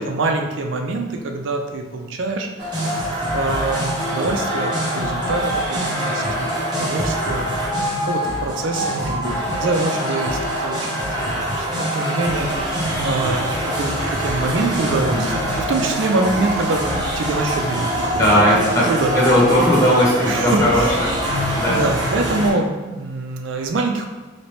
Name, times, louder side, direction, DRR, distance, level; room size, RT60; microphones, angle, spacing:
voice 1, 0.0-16.9 17.2-18.2 18.5-19.1 20.2-21.0 21.7-24.1, right 2 dB, 70° right, 4 dB, 0.4 m, -25 dB
sound 1, 2.6-22.5, equal, 20° right, 0.8 m, -24 dB
voice 2, 18.2-18.9 19.1-21.8, equal, 15° left, -7 dB, 0.9 m, -18 dB
2.9 x 2.8 x 3.1 m, 1.2 s
head